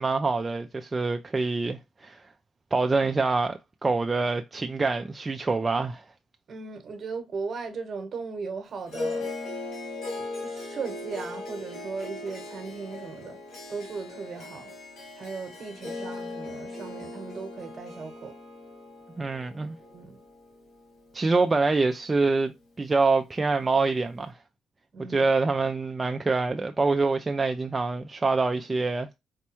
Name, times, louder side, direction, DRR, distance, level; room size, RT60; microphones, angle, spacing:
voice 1, 0.0-2.2 2.7-6.0 19.2-19.8 21.1-24.3 25.0-29.2, right 3 dB, 25° right, 0.3 m, -25 dB
voice 2, 6.5-9.3 10.1-13.4 13.7-14.7 15.2-18.3 19.8-20.2 24.9-25.3, right 4 dB, 50° right, 1.0 m, -37 dB
Harp, 8.9-21.4, left 2 dB, 75° left, 1.6 m, -38 dB
4.2 x 2.2 x 2.9 m
cardioid pair, 90°, 0 cm